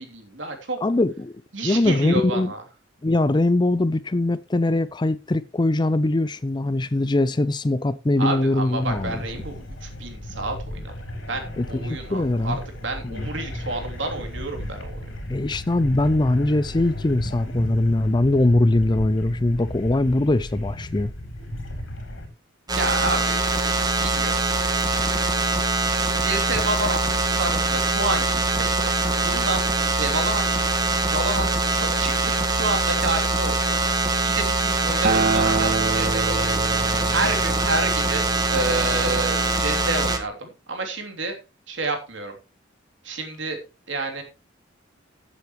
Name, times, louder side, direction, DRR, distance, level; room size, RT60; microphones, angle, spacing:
voice 1, 0.0-0.8 1.5-2.6 8.2-10.9 11.3-15.0 22.7-23.5 23.9-24.5 26.2-29.6 30.0-41.4 41.7-42.3 43.0-43.6 43.9-44.2, right 2 dB, 65° right, 3.1 m, -30 dB
voice 2, 0.8-1.3 1.6-2.5 3.0-9.1 11.6-12.6 13.0-13.3 15.3-21.1, left 2 dB, 20° left, 0.5 m, -21 dB
sound 1, 8.8-22.3, equal, 75° left, 4.3 m, -35 dB
sound 2, 22.7-40.2, right 2 dB, 20° right, 1.6 m, -23 dB
Acoustic guitar, 35.0-39.3 40.2-40.3, right 3 dB, 50° right, 1.4 m, -27 dB
15.5 x 8.1 x 3.1 m
head